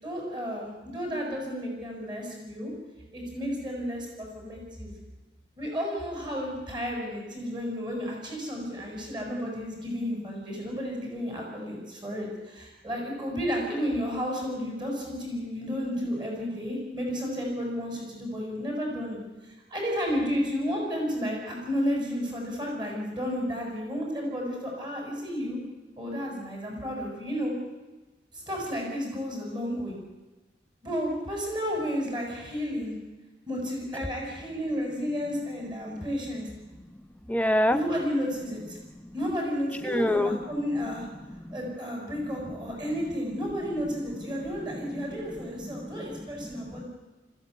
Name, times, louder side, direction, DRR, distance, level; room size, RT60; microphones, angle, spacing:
voice 1, 0.0-2.7 3.1-4.9 5.6-25.6 26.0-27.5 28.3-30.0 30.8-32.9 33.5-36.5 37.7-38.8 39.1-41.1 41.5-46.9, equal, 25° right, 0 dB, 7.2 m, -32 dB
voice 2, 37.3-37.8 38.9-39.1 39.8-40.4 41.2-41.6 44.3-46.8, left 1 dB, 10° left, 8 dB, 1.0 m, -29 dB
21.0 x 15.0 x 9.5 m, 1.1 s
head